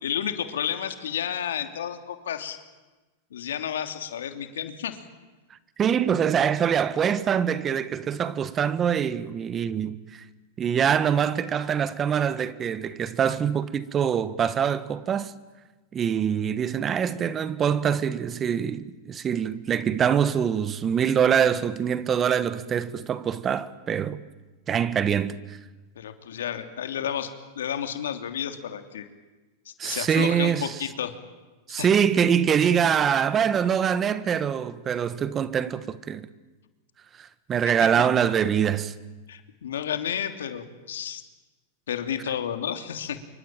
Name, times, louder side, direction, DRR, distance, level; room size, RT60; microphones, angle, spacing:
voice 1, 0.0-2.6 3.3-5.0 26.0-29.1 29.6-31.1 31.7-31.9 37.8-37.9 39.3-41.2 41.9-43.2, left 9 dB, 85° left, 3.0 m, -31 dB
voice 2, 5.8-10.2 10.6-15.3 15.9-24.2 24.7-25.6 29.8-30.7 31.7-36.3 37.2-38.9, right 8 dB, 25° right, 1.4 m, -24 dB
27.0 x 24.0 x 9.1 m
hypercardioid pair, 125°, 0 cm